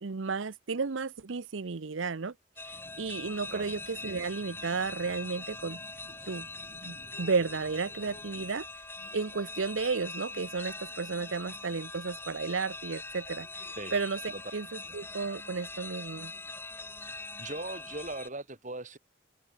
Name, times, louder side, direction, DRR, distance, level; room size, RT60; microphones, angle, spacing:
voice 1, 0.0-5.8 6.2-6.5 6.8-8.8 9.1-14.7 14.9-16.3, right 4 dB, 75° right, 0.7 m, -33 dB
sound 1, 2.6-18.3, left 3 dB, 10° left, 1.9 m, -43 dB
sound 2, 2.7-8.5, left 1 dB, 40° left, 5.8 m, -55 dB
voice 2, 17.4-19.0, right 2 dB, 40° right, 5.5 m, -39 dB
head